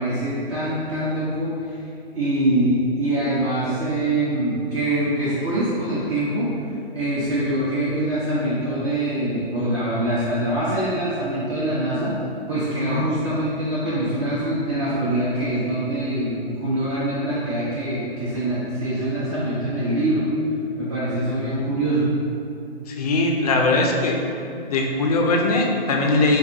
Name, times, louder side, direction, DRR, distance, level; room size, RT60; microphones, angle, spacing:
voice 1, 0.0-1.8 2.1-6.5 6.9-12.2 12.5-20.3 20.8-22.1, right 1 dB, 30° right, -9 dB, 0.5 m, -24 dB
voice 2, 22.9-24.2 24.7-26.4, left 2 dB, 40° left, 1 dB, 0.4 m, -20 dB
4.7 x 2.2 x 2.5 m, 2.5 s
hypercardioid pair, 135°, 30 cm